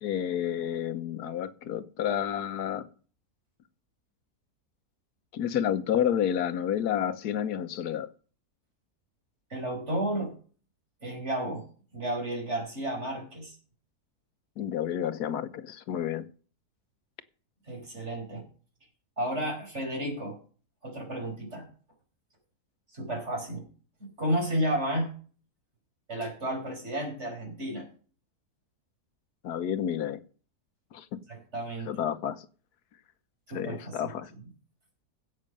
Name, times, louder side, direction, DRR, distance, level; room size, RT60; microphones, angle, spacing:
voice 1, 0.0-2.9 5.3-8.1 14.6-16.2 29.4-30.2 30.9-31.2 31.8-32.5 33.5-34.3, left 9 dB, 85° left, 1.4 m, -30 dB
voice 2, 9.5-10.3 11.0-11.7 11.9-13.6 17.7-18.5 19.2-20.4 20.8-21.7 22.9-23.7 24.0-25.1 26.1-27.9 31.3-31.9 33.5-34.1, right 1 dB, 45° right, 5.4 m, -32 dB
16.0 x 6.6 x 5.3 m
omnidirectional pair, 1.6 m